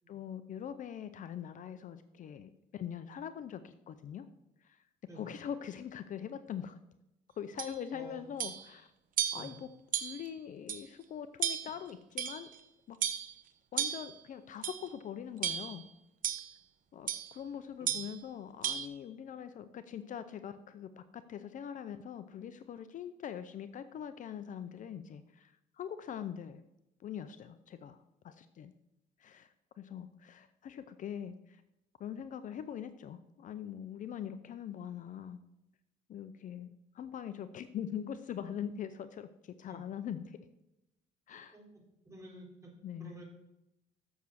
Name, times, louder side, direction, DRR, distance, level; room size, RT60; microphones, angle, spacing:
voice 1, 0.1-4.3 4.6-4.8 5.1-6.8 7.4-8.9 9.3-9.7 10.0-12.5 12.9-13.0 13.7-15.8 16.9-26.6 27.0-28.0 28.2-28.7 29.2-31.6 32.0-35.4 36.1-40.5 41.3-41.6 42.8-43.2, left 9 dB, 50° left, 11 dB, 0.6 m, -43 dB
sound 1, 7.6-7.7 8.4-8.7 9.2-9.5 9.9-10.3 10.7-10.8 11.4-11.8 12.2-12.6 13.0-13.3 13.8-14.1 14.6-14.9 15.4-15.8 16.2-16.5 17.1-17.3 17.9-18.1 18.6-18.9, right 9 dB, 55° right, 0.9 m, -34 dB
voice 2, 7.9-8.3 9.3-9.6 17.8-17.9 39.7-39.8 41.5-42.7 43.0-43.2, right 2 dB, 20° right, -2 dB, 3.4 m, -51 dB
7.2 x 7.0 x 6.3 m, 0.88 s
cardioid pair, 110°, 17 cm